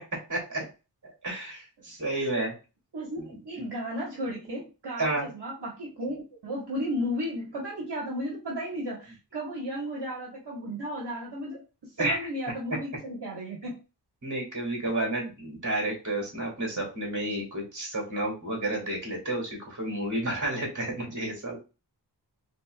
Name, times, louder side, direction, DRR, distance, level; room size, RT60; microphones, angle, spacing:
voice 1, 0.3-0.6 1.2-2.5 3.6-3.7 5.0-5.3 12.0-12.2 14.2-21.6, right 1 dB, 45° right, -1 dB, 2.2 m, -31 dB
voice 2, 2.9-13.8, equal, 65° right, -3 dB, 1.3 m, -34 dB
4.2 x 3.7 x 2.2 m, 0.30 s
wide cardioid pair, 80°, 42 cm